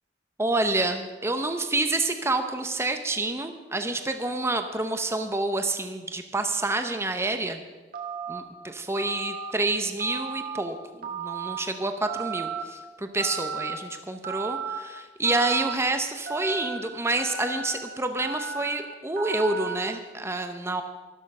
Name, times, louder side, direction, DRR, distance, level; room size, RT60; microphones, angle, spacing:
voice 1, 0.4-7.6 8.3-20.8, right 2 dB, 15° right, 7 dB, 0.8 m, -28 dB
Telephone, 7.9-8.4 9.0-9.5 10.0-10.6 11.0-11.6 12.1-12.6 13.2-13.8 14.2-14.8 15.2-15.7 16.3-16.8 17.2-17.7 18.2-18.7 19.2-19.7, right 6 dB, 50° right, 1.9 m, -34 dB
13.0 x 12.5 x 5.4 m, 1.3 s
head